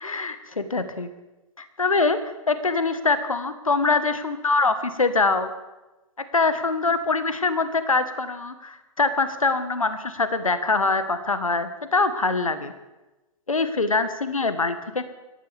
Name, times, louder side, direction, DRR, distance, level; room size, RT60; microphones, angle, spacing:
voice 1, 0.0-1.1 1.6-2.2 2.5-5.5 6.2-12.7 13.5-15.1, left 3 dB, 75° left, 11 dB, 1.3 m, -24 dB
25.5 x 14.0 x 3.5 m, 1.1 s
figure-of-eight pair, 110°, 18 cm